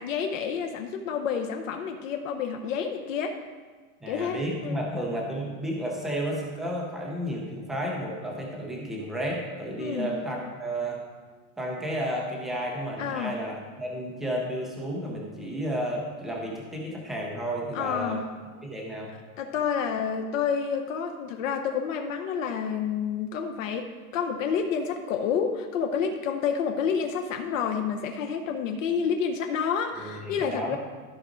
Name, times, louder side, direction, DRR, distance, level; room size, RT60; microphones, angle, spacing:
voice 1, 0.0-3.4 4.1-4.8 9.8-10.1 13.0-13.4 17.7-18.2 19.4-30.8, left 7 dB, 65° left, 5 dB, 0.8 m, -29 dB
voice 2, 4.0-11.0 11.6-18.2 18.6-19.1 30.0-30.8, equal, ahead, -3 dB, 0.4 m, -32 dB
13.5 x 4.9 x 3.8 m, 1.4 s
supercardioid pair, 165°, 43 cm